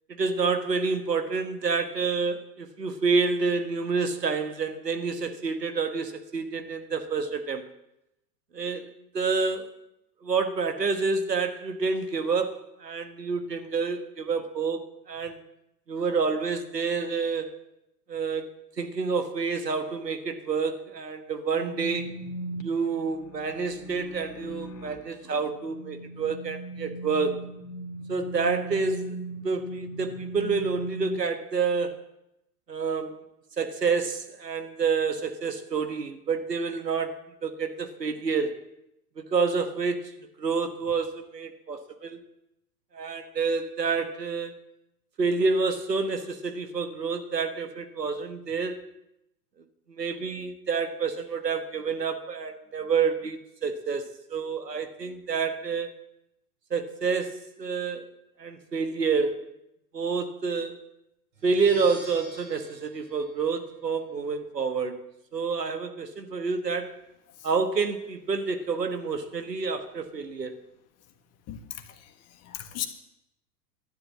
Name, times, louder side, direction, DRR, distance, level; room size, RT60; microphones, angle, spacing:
voice 1, 0.1-7.6 8.5-8.9 9.1-9.7 10.2-15.4 15.9-17.5 18.1-18.5 18.8-22.1 22.6-27.4 28.1-29.2 29.4-32.0 32.7-33.2 33.6-37.1 37.4-38.5 39.2-40.1 40.4-42.2 42.9-44.5 45.2-48.8 49.9-55.9 56.7-58.1 58.4-59.5 59.9-60.8 61.4-65.0 65.3-66.9 67.4-70.5, right 4 dB, 85° right, 1.5 m, -28 dB
sound 1, 21.5-31.2, right 2 dB, 50° left, 2.3 m, -39 dB
sound 2, 61.3-64.2, right 1 dB, 55° right, 6.4 m, -48 dB
voice 2, 71.5-72.9, left 11 dB, 30° left, 1.6 m, -38 dB
12.5 x 11.0 x 7.4 m
figure-of-eight pair, 95°, 48 cm